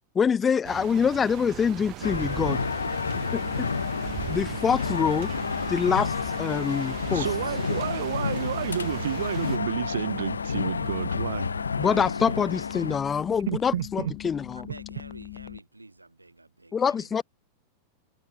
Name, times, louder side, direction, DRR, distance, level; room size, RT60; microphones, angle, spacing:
voice 1, 0.1-2.6 3.3-3.7 4.3-5.3 5.7-7.3 11.8-14.6 16.7-17.2, left 6 dB, 20° left, 0.7 m, -25 dB
sound 1, 0.6-9.6, right 22 dB, 40° right, 4.3 m, -39 dB
sound 2, 2.0-13.0, left 5 dB, 75° left, 1.0 m, -30 dB
sound 3, 3.4-15.6, left 27 dB, 50° left, 3.7 m, -42 dB
voice 2, 7.1-11.6 13.5-14.1, right 11 dB, 60° right, 1.3 m, -30 dB
voice 3, 14.5-17.2, right 2 dB, 85° right, 2.7 m, -48 dB
figure-of-eight pair, 90°, 0 cm